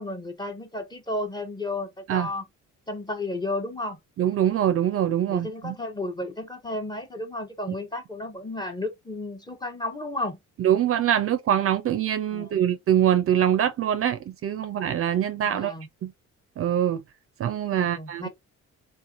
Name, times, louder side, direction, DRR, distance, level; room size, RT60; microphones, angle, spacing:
voice 1, 0.0-2.4 2.9-4.0 5.3-10.4 12.3-12.6 15.5-15.9 17.7-18.3, left 2 dB, 15° left, 0.7 m, -33 dB
voice 2, 4.2-5.7 10.6-15.7 16.0-16.1 16.6-17.0 17.4-18.3, right 10 dB, 50° right, 0.4 m, -24 dB
2.6 x 2.2 x 2.3 m
cardioid pair, 90°, 30 cm